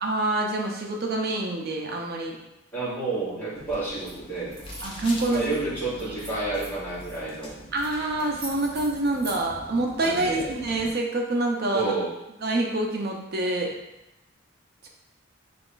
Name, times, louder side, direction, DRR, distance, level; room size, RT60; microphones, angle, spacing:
voice 1, 0.0-2.4 4.8-5.5 6.1-6.4 7.7-11.9 12.4-13.7 14.8-14.9, right 2 dB, 50° right, 0 dB, 0.6 m, -26 dB
voice 2, 2.7-4.6 5.3-7.5 10.0-10.6 11.7-12.1, right 3 dB, 10° left, -10 dB, 1.3 m, -30 dB
sound 1, 3.5-10.9, left 1 dB, 25° left, 0.6 m, -43 dB
sound 2, 4.0-4.2 4.5-5.6 6.0-7.2 7.8-7.9 8.2-9.4, right 1 dB, 30° right, 1.2 m, -42 dB
3.5 x 2.4 x 3.8 m, 0.91 s
head